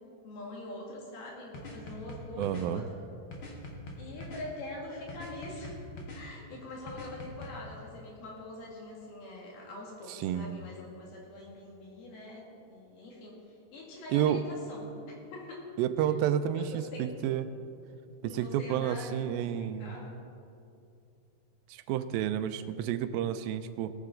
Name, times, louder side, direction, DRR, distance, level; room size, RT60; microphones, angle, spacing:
voice 1, 0.0-2.9 4.0-5.8 6.1-13.4 13.7-15.6 16.0-16.1 16.5-17.1 18.2-20.2, left 2 dB, 85° left, -2 dB, 4.1 m, -44 dB
sound 1, 1.5-2.6 3.3-4.4 5.1-6.2 6.9-7.5, left 1 dB, 50° left, 1.6 m, -43 dB
voice 2, 2.4-2.9 10.1-10.6 14.1-14.4 15.8-17.5 18.2-20.0 21.7-23.9, right 10 dB, 85° right, 11 dB, 2.3 m, -30 dB
18.5 x 9.6 x 3.8 m, 2.6 s
omnidirectional pair, 4.2 m